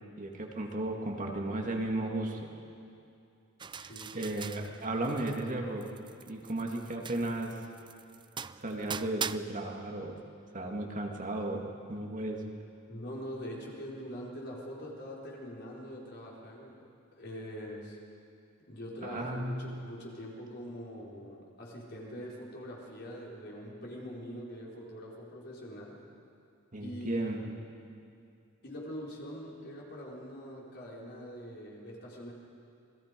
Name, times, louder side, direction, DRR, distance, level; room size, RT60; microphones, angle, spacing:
voice 1, 0.2-2.5 3.8-5.9 6.3-7.5 8.6-10.2 10.5-11.6 11.9-12.4 19.0-19.6 26.7-27.4, right 2 dB, 40° right, 1 dB, 2.1 m, -34 dB
sound 1, 3.6-5.5 5.8-9.4, right 7 dB, 20° right, 0.4 m, -41 dB
voice 2, 3.7-4.4 12.9-16.9 17.2-18.0 18.7-26.0 26.8-27.5 28.6-32.3, equal, 55° left, -3 dB, 4.6 m, -43 dB
28.0 x 20.5 x 5.3 m, 2.5 s
head